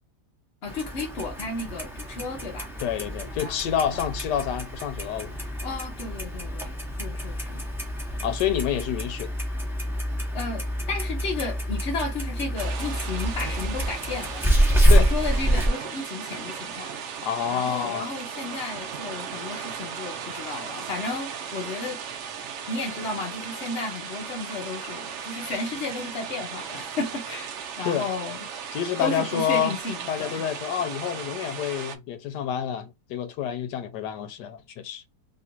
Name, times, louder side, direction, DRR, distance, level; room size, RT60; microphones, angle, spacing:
voice 1, 0.6-2.7 3.1-3.6 5.6-7.6 10.3-14.4 14.7-17.0 17.5-22.0 22.7-28.5 29.0-30.4, left 3 dB, 50° left, 0.9 m, -33 dB
Clock, 0.6-15.7, equal, ahead, 0.8 m, -27 dB
voice 2, 2.8-5.4 8.2-9.3 14.9-15.1 17.2-18.1 27.8-28.1 28.7-29.8 30.1-35.0, left 9 dB, 80° left, 1.2 m, -28 dB
sound 1, 12.6-32.0, right 7 dB, 70° right, 0.7 m, -36 dB
3.0 x 2.4 x 4.3 m
omnidirectional pair, 1.8 m